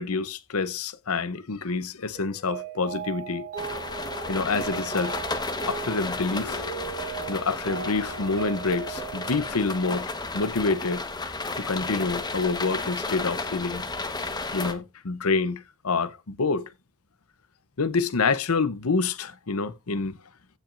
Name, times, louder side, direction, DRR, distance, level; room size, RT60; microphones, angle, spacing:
voice 1, 0.0-3.5 4.3-5.2 5.7-6.7 7.2-13.9 14.5-16.7 17.8-20.1, left 4 dB, 80° left, 0.8 m, -27 dB
Mallet percussion, 2.1-10.3, right 7 dB, 75° right, 3.9 m, -38 dB
sound 1, 3.6-14.7, left 3 dB, 20° left, 1.2 m, -33 dB
15.5 x 6.0 x 2.6 m
head